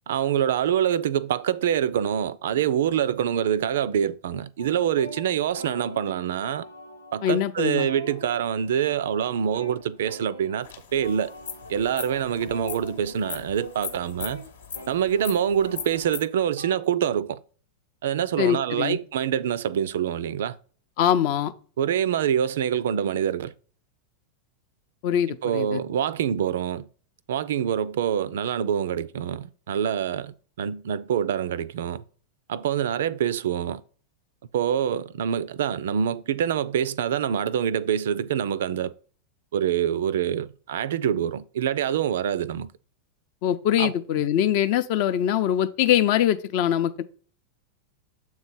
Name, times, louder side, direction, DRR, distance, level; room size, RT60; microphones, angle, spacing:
voice 1, 0.1-6.7 7.1-11.3 11.7-14.4 14.9-17.4 18.0-20.6 21.8-23.5 25.4-26.9 27.3-32.0 32.5-33.8 34.5-38.9 39.5-42.7 43.8-44.3, right 9 dB, 60° right, 0.3 m, -25 dB
sound 1, 4.6-16.8, equal, 90° left, 1.0 m, -43 dB
voice 2, 7.2-7.9 18.4-19.0 21.0-21.5 25.0-25.8 43.4-47.0, left 10 dB, 45° left, 0.5 m, -23 dB
sound 2, 10.6-16.2, left 6 dB, 65° left, 1.0 m, -39 dB
7.4 x 3.1 x 5.5 m
figure-of-eight pair, 90°, 0 cm